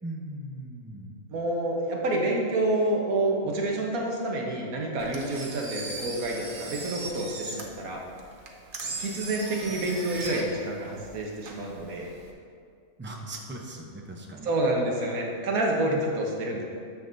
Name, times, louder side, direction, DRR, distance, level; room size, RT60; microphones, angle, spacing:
voice 1, 0.0-1.3 13.0-14.5 15.9-16.0, right 1 dB, 15° right, 0 dB, 0.4 m, -39 dB
voice 2, 1.3-8.0 9.0-12.1 14.4-16.7, right 1 dB, 80° right, -1 dB, 1.5 m, -28 dB
Engine, 5.0-12.3, right 3 dB, 45° right, 0.9 m, -39 dB
9.8 x 7.2 x 2.6 m, 2.3 s
omnidirectional pair, 1.5 m